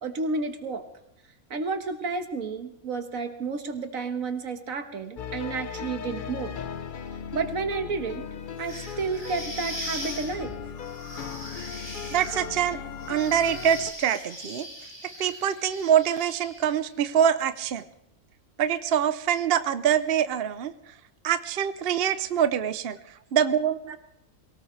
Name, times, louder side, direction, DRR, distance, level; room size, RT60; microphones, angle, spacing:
voice 1, 0.0-0.8 1.5-6.5 7.3-8.3 8.6-10.5 23.9-24.0, right 4 dB, 70° right, 7 dB, 1.7 m, -31 dB
sound 1, 5.2-13.9, left 7 dB, 50° left, 0.6 m, -37 dB
sound 2, 8.6-16.9, equal, 15° left, 3.0 m, -40 dB
voice 2, 12.1-12.8 13.1-14.7 15.2-17.8 18.6-20.7 21.2-23.0 23.3-23.8, right 9 dB, 55° right, 12 dB, 0.8 m, -24 dB
23.0 x 18.0 x 3.2 m, 0.81 s
omnidirectional pair, 1.5 m